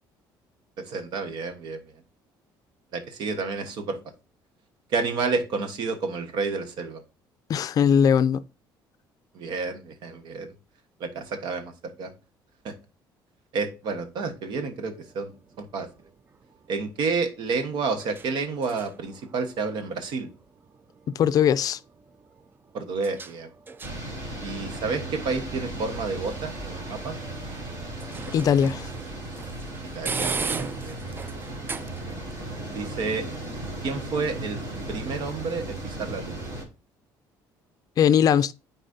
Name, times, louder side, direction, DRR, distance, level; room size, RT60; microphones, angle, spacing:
voice 1, 0.8-1.8 2.9-4.0 4.9-7.0 9.3-10.5 11.0-11.7 12.0-12.1 12.6-12.7 13.5-15.9 16.7-20.3 22.7-23.5 24.4-27.2 29.9-31.2 32.6-33.3 33.8-34.6 34.9-36.5, right 4 dB, 65° right, 1.2 m, -30 dB
voice 2, 7.5-8.4 21.1-21.8 28.3-28.9 38.0-38.5, left 8 dB, 50° left, 0.4 m, -20 dB
sound 1, 14.9-32.3, right 4 dB, 25° right, 0.4 m, -40 dB
sound 2, 23.8-36.6, right 2 dB, 40° right, 2.9 m, -36 dB
9.5 x 4.1 x 2.7 m
cardioid pair, 110°, 8 cm